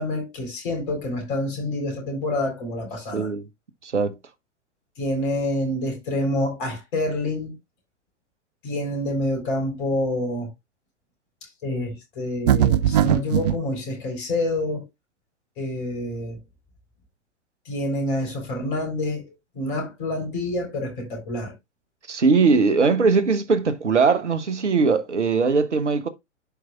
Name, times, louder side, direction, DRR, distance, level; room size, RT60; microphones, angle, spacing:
voice 1, 0.0-3.3 5.0-7.5 8.6-10.5 11.4-14.9 15.6-16.4 17.7-19.2 19.5-21.5, left 1 dB, 45° left, 3.7 m, -27 dB
voice 2, 3.1-3.5 3.8-4.2 22.1-26.1, right 4 dB, 75° right, 1.0 m, -20 dB
sound 1, 12.5-13.6, right 10 dB, 35° right, 0.4 m, -19 dB
11.5 x 4.8 x 2.3 m
figure-of-eight pair, 110°, 36 cm